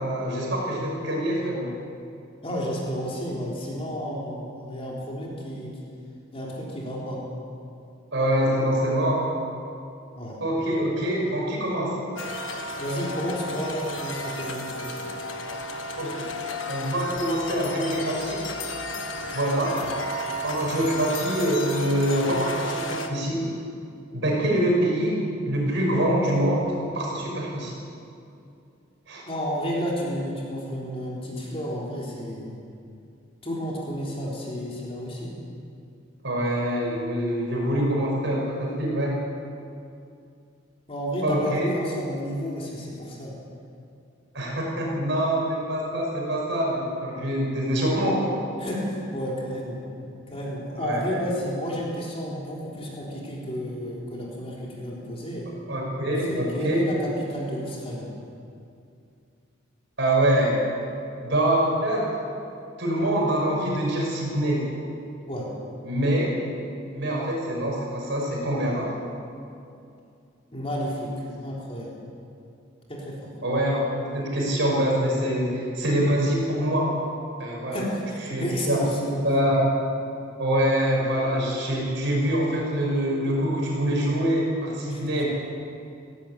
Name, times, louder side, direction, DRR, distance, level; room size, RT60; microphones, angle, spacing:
voice 1, 0.0-1.7 8.1-9.2 10.4-12.0 16.0-16.3 16.7-18.5 19.3-19.8 20.4-23.4 24.1-26.7 26.9-27.8 29.1-29.2 36.2-39.1 41.2-41.8 44.3-48.4 50.8-51.2 55.7-56.8 60.0-60.7 61.2-62.1 62.8-64.8 65.8-66.3 66.9-68.9 73.4-77.0 77.4-77.8 78.3-78.8 79.2-79.7 80.4-85.3, right 1 dB, 60° right, -2 dB, 6.1 m, -25 dB
voice 2, 2.4-5.8 6.3-7.2 10.1-10.4 12.8-15.0 19.9-20.0 29.3-32.6 33.4-35.4 40.9-43.3 48.6-49.8 50.3-55.5 56.3-58.1 65.3-65.5 70.5-71.9 72.9-73.3 77.7-79.2 84.9-85.0, equal, 30° left, -4 dB, 3.7 m, -31 dB
sound 1, 12.2-23.1, left 1 dB, 70° left, 1.6 m, -33 dB
19.0 x 16.0 x 8.6 m, 2.5 s
head